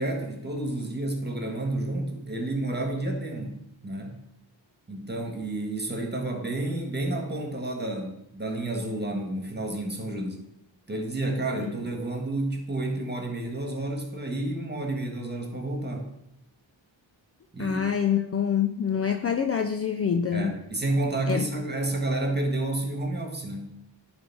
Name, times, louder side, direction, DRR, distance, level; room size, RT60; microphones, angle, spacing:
voice 1, 0.0-3.5 3.8-4.2 4.9-10.4 10.9-16.1 17.5-17.8 20.3-23.8, right 2 dB, 20° right, 3 dB, 1.7 m, -30 dB
voice 2, 17.6-20.5 21.3-21.4, left 7 dB, 30° left, 7 dB, 0.4 m, -26 dB
10.0 x 3.5 x 4.6 m, 0.80 s
cardioid pair, 60°, 48 cm